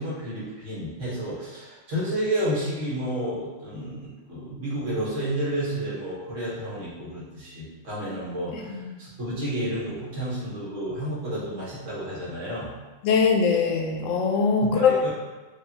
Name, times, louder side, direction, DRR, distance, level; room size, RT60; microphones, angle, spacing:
voice 1, 0.0-12.7 14.6-15.1, right 1 dB, 70° right, -8 dB, 1.6 m, -31 dB
voice 2, 13.0-15.0, left 5 dB, 75° left, 2 dB, 1.0 m, -21 dB
4.9 x 2.4 x 2.8 m, 1.2 s
omnidirectional pair, 1.4 m